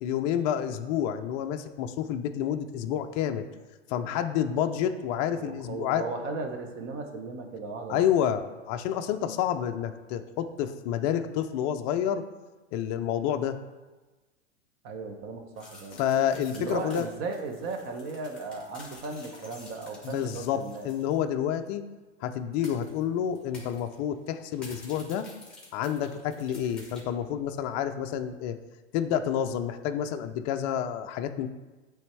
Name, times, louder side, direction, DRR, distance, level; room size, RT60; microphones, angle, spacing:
voice 1, 0.0-3.5 3.9-6.0 7.9-12.2 12.7-13.6 15.9-17.1 20.0-21.8 22.2-25.3 25.7-28.6 28.9-31.5, left 9 dB, 40° left, 7 dB, 0.4 m, -29 dB
voice 2, 5.4-8.0 14.8-16.0 16.5-20.9, right 3 dB, 35° right, 4 dB, 0.8 m, -36 dB
sound 1, 15.6-21.2 21.5-21.6 22.6-23.0 23.4-24.0 24.5-27.0, left 2 dB, ahead, 1.9 m, -50 dB
8.5 x 3.4 x 3.3 m, 1.2 s
hypercardioid pair, 120°, 36 cm